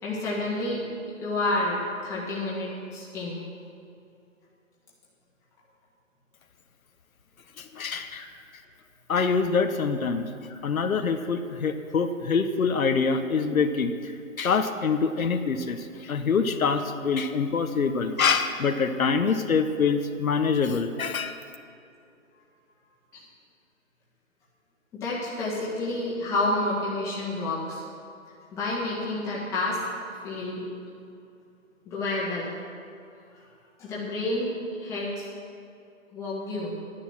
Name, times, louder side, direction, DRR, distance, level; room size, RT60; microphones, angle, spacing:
voice 1, 0.0-0.8 1.2-3.4 8.1-8.2 23.1-23.2 25.0-27.8 28.5-29.8 30.1-30.6 31.8-32.5 33.8-35.3 36.1-36.7, left 2 dB, 5° left, -7 dB, 1.7 m, -29 dB
voice 2, 7.6-8.2 9.1-10.2 10.6-14.1 14.4-21.4, left 5 dB, 85° left, 7 dB, 1.1 m, -25 dB
11.5 x 10.0 x 5.9 m, 2.5 s
hypercardioid pair, 165°, 41 cm